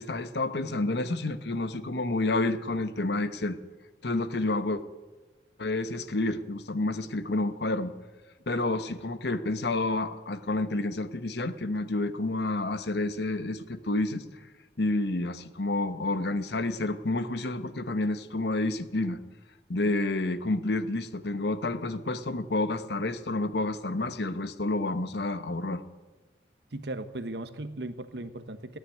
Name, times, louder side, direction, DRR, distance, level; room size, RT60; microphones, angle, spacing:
voice 1, 0.0-3.6 4.0-4.8 5.6-7.9 8.5-14.2 14.8-19.2 19.7-25.8, left 2 dB, 75° left, 12 dB, 1.0 m, -29 dB
voice 2, 26.7-28.8, right 2 dB, 80° right, 11 dB, 1.1 m, -37 dB
16.0 x 9.7 x 9.2 m, 1.2 s
head